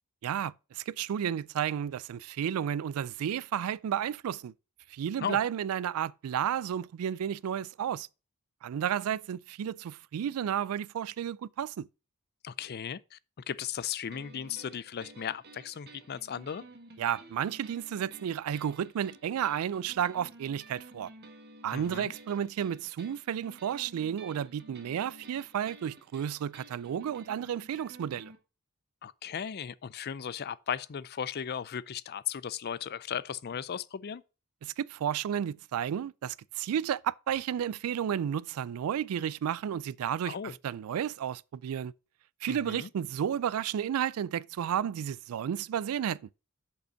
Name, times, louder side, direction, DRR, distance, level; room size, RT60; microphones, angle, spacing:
voice 1, 0.2-4.5 4.9-8.1 8.6-11.9 17.0-21.1 21.6-28.3 34.6-40.4 40.6-41.9 42.4-46.2, right 9 dB, 80° right, 0.3 m, -32 dB
voice 2, 12.4-13.2 13.5-16.6 21.7-22.1 29.0-34.2 40.3-40.5 42.5-42.9, left 8 dB, 45° left, 0.4 m, -36 dB
sound 1, 14.1-28.4, right 2 dB, 50° right, 1.5 m, -53 dB
6.7 x 5.4 x 5.6 m
head